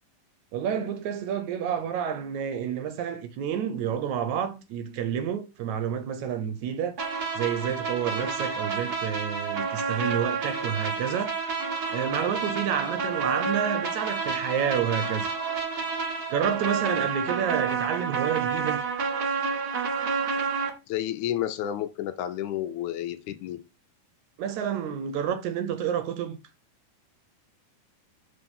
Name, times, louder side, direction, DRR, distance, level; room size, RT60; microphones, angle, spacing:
voice 1, 0.5-7.0 7.4-11.3 11.9-15.3 16.3-18.8 24.4-26.4, right 8 dB, 70° right, 2.0 m, -29 dB
sound 1, 7.0-20.7, right 5 dB, 50° right, 1.1 m, -29 dB
voice 2, 20.9-23.6, left 11 dB, 75° left, 2.0 m, -31 dB
6.8 x 4.5 x 5.4 m
omnidirectional pair, 3.7 m